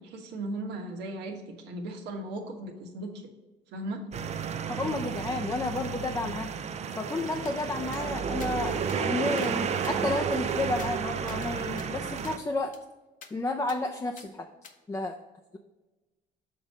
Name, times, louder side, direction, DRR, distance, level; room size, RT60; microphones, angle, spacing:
voice 1, 0.0-3.3 3.7-4.0, right 1 dB, 80° right, 3 dB, 1.3 m, -37 dB
sound 1, 4.1-12.4, right 6 dB, 40° right, 0.5 m, -32 dB
voice 2, 4.7-6.5 7.0-12.7 13.3-14.5 14.9-15.2, left 2 dB, 15° left, 2 dB, 0.5 m, -31 dB
sound 2, 7.5-7.6 7.9-8.0 8.4-8.5 8.9-9.0 9.4-9.5 9.8-11.5 11.8-11.9 12.2-12.4 12.7-12.8 13.2-13.3 13.7-13.8 14.2-14.3 14.6-14.8, left 6 dB, 50° left, 0.8 m, -49 dB
6.5 x 3.8 x 5.2 m, 1.1 s
cardioid pair, 110°, 17 cm